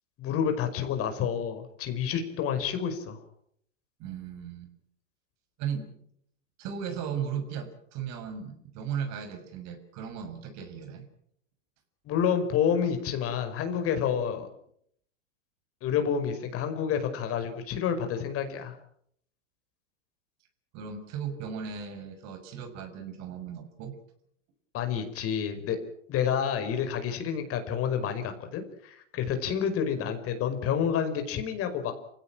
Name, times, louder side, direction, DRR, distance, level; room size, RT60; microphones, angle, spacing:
voice 1, 0.2-3.2 12.0-14.5 15.8-18.8 24.7-25.8 26.1-31.9, left 8 dB, 35° left, 7 dB, 5.3 m, -29 dB
voice 2, 4.0-4.7 5.6-5.9 6.6-11.1 20.7-24.0, right 7 dB, 45° right, 7 dB, 6.4 m, -36 dB
28.0 x 17.0 x 8.9 m, 0.70 s
hypercardioid pair, 105°, 37 cm